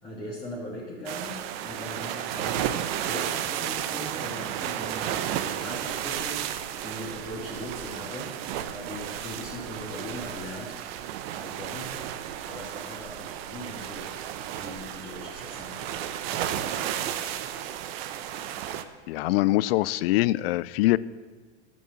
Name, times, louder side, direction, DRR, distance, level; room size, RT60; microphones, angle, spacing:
voice 1, 0.0-2.7 3.0-8.3 8.7-10.8 11.4-11.9 12.4-14.1 14.6-17.3, equal, 15° left, -6 dB, 2.7 m, -40 dB
sound 1, 1.1-18.8, right 10 dB, 55° right, 0.9 m, -33 dB
voice 2, 19.1-21.0, left 17 dB, 55° left, 20 dB, 0.5 m, -23 dB
11.0 x 8.4 x 7.2 m, 1.4 s
hypercardioid pair, 120°, 36 cm